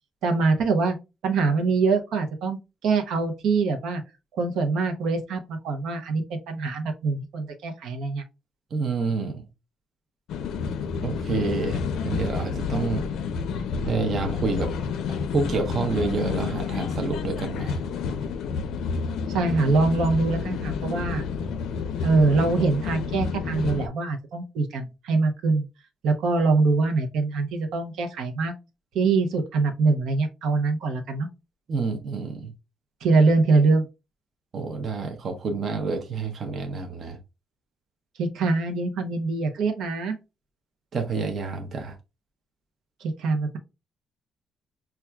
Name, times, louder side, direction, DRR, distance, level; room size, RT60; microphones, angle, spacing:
voice 1, 0.2-1.0 1.2-4.0 4.4-8.2 19.3-21.2 22.0-25.6 26.0-28.5 28.9-31.3 33.0-33.9 38.2-40.2 43.0-43.6, right 3 dB, 80° right, 0.7 m, -24 dB
voice 2, 8.7-9.5 11.0-13.1 13.8-14.7 15.1-17.8 31.7-32.5 34.5-37.2 40.9-42.0, right 4 dB, 40° right, 0.6 m, -28 dB
sound 1, 10.3-23.9, left 5 dB, 85° left, 0.4 m, -29 dB
5.7 x 2.3 x 2.3 m
cardioid pair, 170°, 0 cm